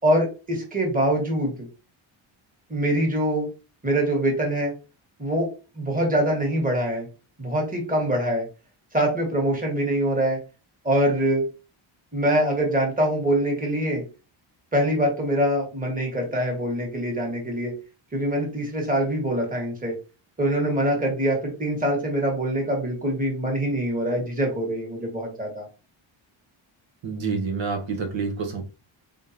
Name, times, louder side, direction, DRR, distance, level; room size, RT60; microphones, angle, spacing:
voice 1, 0.0-1.5 2.7-3.5 3.8-4.7 5.2-5.5 5.7-7.1 7.4-8.4 8.9-10.4 10.8-11.4 12.1-14.0 14.7-17.7 18.1-19.9 20.4-25.7, right 1 dB, 15° right, 0 dB, 1.6 m, -24 dB
voice 2, 27.0-28.6, right 4 dB, 65° right, 3 dB, 1.2 m, -28 dB
3.7 x 3.6 x 2.8 m, 0.32 s
wide cardioid pair, 125°, 49 cm